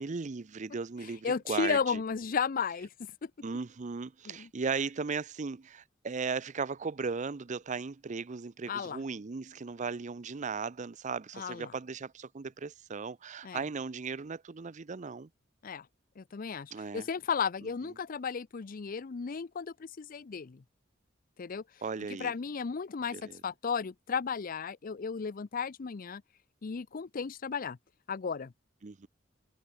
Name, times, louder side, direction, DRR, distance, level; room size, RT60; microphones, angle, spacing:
voice 1, 0.0-2.0 3.4-15.3 16.7-17.1 21.8-22.3 23.1-23.4 28.8-29.1, right 5 dB, 40° right, 0.5 m, -37 dB
voice 2, 1.2-2.9 3.2-3.3 4.3-4.5 8.7-9.0 11.3-11.7 13.4-13.6 15.6-15.9 16.2-20.6 21.4-21.6 22.2-23.2 23.4-26.2 26.6-27.8 28.1-28.5, left 6 dB, 45° left, 0.5 m, -34 dB
head